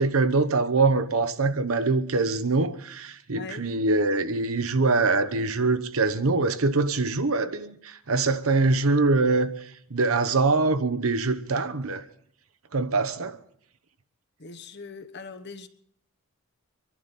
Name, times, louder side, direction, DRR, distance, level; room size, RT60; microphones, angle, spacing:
voice 1, 0.0-12.0 12.7-13.4, right 3 dB, 85° right, 1.0 m, -24 dB
voice 2, 3.3-3.7 14.4-15.7, left 4 dB, 55° left, 1.1 m, -41 dB
25.0 x 11.5 x 4.2 m
head